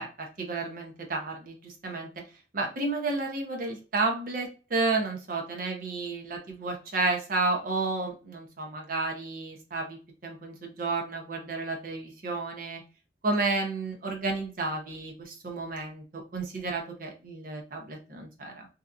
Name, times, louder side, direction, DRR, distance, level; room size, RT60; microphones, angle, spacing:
voice 1, 0.0-2.1 2.5-12.8 13.2-18.7, right 3 dB, 50° right, 2 dB, 0.7 m, -31 dB
2.7 x 2.4 x 2.3 m, 0.34 s
head